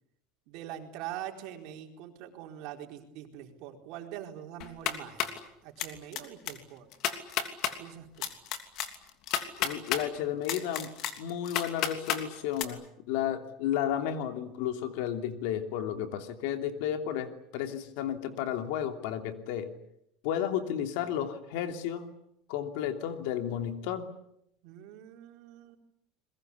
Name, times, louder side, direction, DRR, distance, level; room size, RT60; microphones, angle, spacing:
voice 1, 0.5-5.3 5.6-6.9 7.7-8.4 24.6-25.8, right 11 dB, 60° right, 4 dB, 4.4 m, -43 dB
sound 1, 4.6-5.4 5.8-6.2 6.5-6.6 6.9-7.7 8.2-10.0 10.4-12.2 12.6-12.7, left 10 dB, 55° left, 3.0 m, -31 dB
voice 2, 9.6-10.9 11.2-19.7 20.2-22.1 22.5-24.1, left 10 dB, 75° left, 7 dB, 2.9 m, -32 dB
28.5 x 22.0 x 8.4 m, 0.76 s
cardioid pair, 145°, 0 cm